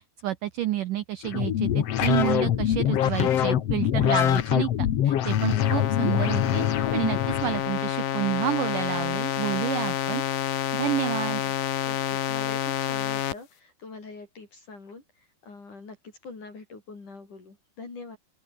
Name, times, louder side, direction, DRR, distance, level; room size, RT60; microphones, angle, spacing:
voice 1, 0.2-6.6 6.9-10.2 10.7-11.4, right 13 dB, 80° right, 1.8 m, -29 dB
sound 1, 1.2-7.6, left 10 dB, 90° left, 1.3 m, -24 dB
voice 2, 5.5-5.8 11.9-16.0 16.2-18.2, left 3 dB, 45° left, 6.9 m, -44 dB
sound 2, 5.6-13.3, left 11 dB, 60° left, 3.1 m, -28 dB
open air
omnidirectional pair, 5.0 m